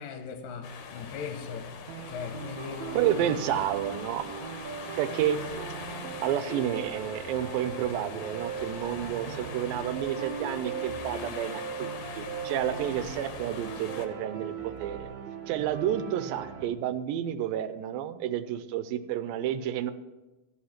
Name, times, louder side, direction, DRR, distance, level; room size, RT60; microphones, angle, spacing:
voice 1, 0.0-1.8 2.1-3.4, left 6 dB, 80° left, 2.4 m, -39 dB
sound 1, 0.6-14.1, left 6 dB, 65° left, 2.2 m, -42 dB
sound 2, 1.9-16.7, right 7 dB, 70° right, 1.9 m, -39 dB
voice 2, 3.0-4.2 4.9-5.4 6.2-15.1 15.5-19.9, right 10 dB, 85° right, 2.4 m, -30 dB
14.5 x 5.4 x 5.8 m
omnidirectional pair, 4.0 m